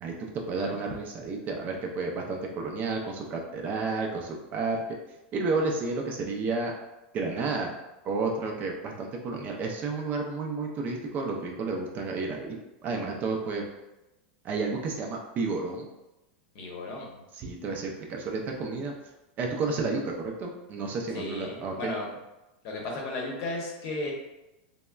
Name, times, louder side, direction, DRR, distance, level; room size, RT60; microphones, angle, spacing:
voice 1, 0.0-4.8 5.3-6.7 7.1-7.7 8.0-12.6 12.8-13.7 14.4-15.9 17.3-18.9 19.4-21.7, right 3 dB, 30° right, 1 dB, 0.4 m, -31 dB
voice 2, 16.5-17.2 21.1-22.1 22.6-24.1, left 2 dB, 50° left, -1 dB, 0.8 m, -35 dB
3.5 x 2.1 x 2.2 m, 0.97 s
supercardioid pair, 145°, 6 cm